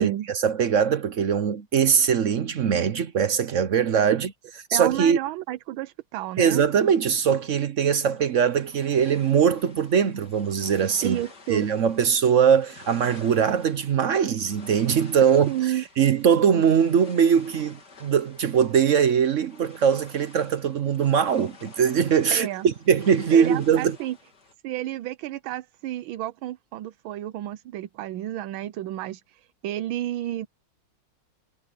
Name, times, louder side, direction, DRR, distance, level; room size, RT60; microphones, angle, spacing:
voice 1, 0.0-4.3 4.7-5.2 6.4-11.2 11.5-24.0, right 7 dB, 60° right, 0.8 m, -21 dB
voice 2, 4.7-6.6 11.0-11.6 15.5-15.8 22.3-22.7 23.3-24.1 24.6-30.5, right 13 dB, 80° right, 1.5 m, -31 dB
sound 1, 8.1-24.5, left 4 dB, 50° left, 3.4 m, -50 dB
omnidirectional pair, 2.2 m